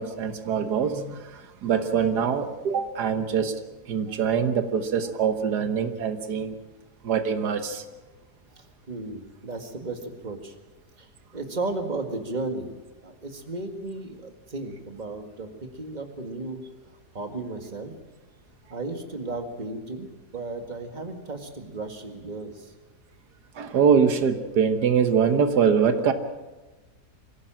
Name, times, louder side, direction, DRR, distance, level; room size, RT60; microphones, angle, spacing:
voice 1, 0.0-3.5 3.9-6.6 7.0-7.8 23.6-26.1, right 7 dB, 90° right, 9 dB, 1.8 m, -23 dB
voice 2, 8.6-10.5 11.0-11.1 11.3-12.8 13.0-16.6 17.1-17.9 18.7-22.7, right 2 dB, 30° right, 5 dB, 2.0 m, -34 dB
24.0 x 16.0 x 7.5 m, 1.2 s
omnidirectional pair, 1.7 m